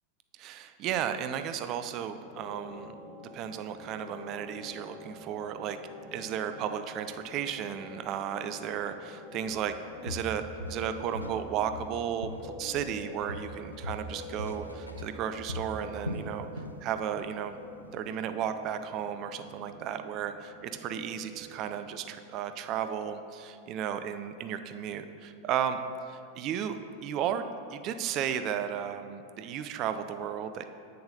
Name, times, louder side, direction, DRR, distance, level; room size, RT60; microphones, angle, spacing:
voice 1, 0.4-2.9 3.3-5.8 6.1-9.7 10.0-10.4 10.7-16.5 16.8-17.6 17.9-25.8 26.1-30.7, right 9 dB, 35° right, 9 dB, 0.3 m, -34 dB
sound 1, 2.2-21.9, left 2 dB, 35° left, 0.7 m, -47 dB
Walk footsteps, 9.5-9.7 10.1-11.4 11.7-13.0 13.3-16.8 17.1-17.4 17.8-17.9, left 1 dB, 85° left, 0.4 m, -39 dB
7.9 x 6.6 x 2.6 m, 2.5 s
figure-of-eight pair, 90°, 0 cm